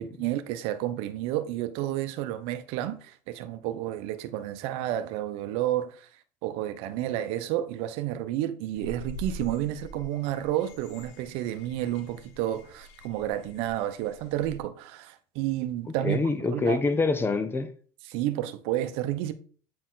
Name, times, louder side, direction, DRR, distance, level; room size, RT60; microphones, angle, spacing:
voice 1, 0.0-6.1 6.4-16.2 16.5-16.8 18.1-19.3, right 13 dB, 75° right, 0.8 m, -31 dB
sound 1, 8.7-14.6, equal, 75° left, 1.1 m, -45 dB
voice 2, 16.0-17.7, left 3 dB, 20° left, 0.9 m, -25 dB
8.6 x 4.3 x 3.9 m
supercardioid pair, 100°, 10 cm